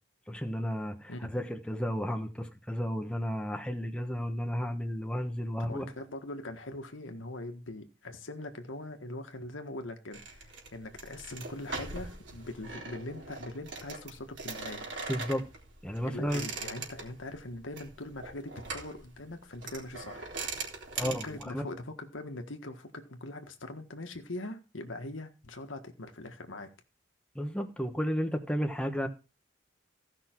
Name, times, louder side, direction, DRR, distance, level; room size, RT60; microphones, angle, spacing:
voice 1, 0.3-5.9 15.1-15.5 15.8-16.4 21.0-21.7 27.3-29.1, equal, 5° left, 1.1 m, -33 dB
voice 2, 5.6-14.9 16.0-20.3 21.0-26.7, left 2 dB, 90° left, 1.6 m, -42 dB
sound 1, 10.1-21.4, right 4 dB, 65° right, 3.5 m, -41 dB
15.5 x 6.0 x 4.5 m
head